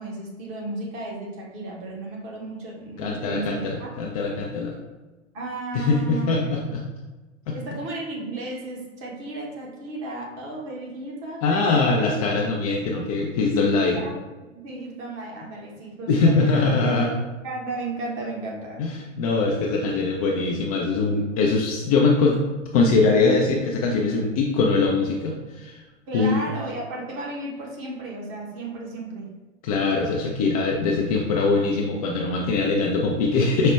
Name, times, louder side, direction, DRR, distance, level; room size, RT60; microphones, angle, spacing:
voice 1, 0.0-4.0 5.3-6.3 7.5-11.9 14.0-14.1 14.5-16.6 17.0-17.1 17.4-18.8 26.1-29.3, right 2 dB, 35° right, -2 dB, 1.0 m, -34 dB
voice 2, 3.0-4.8 5.7-6.6 7.5-7.6 11.4-14.0 16.1-17.2 18.8-18.9 19.2-22.4 22.7-25.8 26.1-26.4 29.6-33.7, left 3 dB, 30° left, -1 dB, 0.4 m, -22 dB
5.3 x 2.1 x 3.2 m, 1.2 s
figure-of-eight pair, 100°, 38 cm